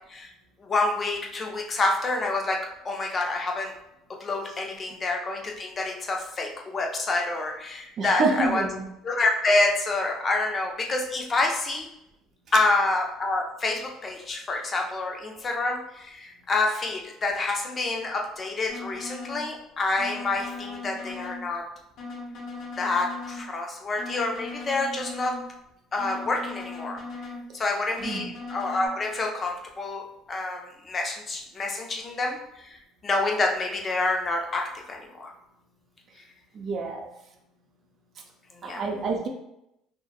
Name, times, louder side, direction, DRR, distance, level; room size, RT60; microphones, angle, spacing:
voice 1, 0.6-2.6 2.8-3.7 4.1-8.7 9.0-11.9 12.5-21.7 22.8-25.3 25.9-27.0 27.5-32.4 32.6-35.3 38.6-38.8, left 2 dB, 35° left, 2 dB, 0.4 m, -27 dB
voice 2, 8.0-8.8 28.0-28.3 36.6-37.1 38.6-39.3, right 3 dB, 50° right, 3 dB, 0.4 m, -27 dB
sound 1, 18.7-19.4 20.0-21.4 22.0-23.4 24.0-25.4 26.0-27.4 28.0-28.9, left 3 dB, 60° left, 1.1 m, -38 dB
2.7 x 2.1 x 2.3 m, 0.82 s
supercardioid pair, 95°, 0 cm